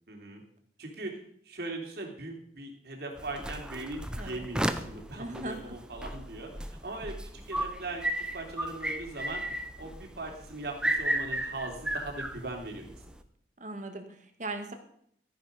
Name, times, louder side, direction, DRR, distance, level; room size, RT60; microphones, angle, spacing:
voice 1, 0.1-0.4 0.8-8.0 8.3-9.4 9.8-13.0, right 2 dB, 60° right, 1 dB, 3.1 m, -40 dB
sound 1, 3.2-13.2, right 1 dB, 5° right, 0.7 m, -34 dB
voice 2, 4.1-4.5 5.2-5.6 13.6-14.7, right 2 dB, 45° right, 6 dB, 1.9 m, -39 dB
13.5 x 10.0 x 5.2 m, 0.66 s
head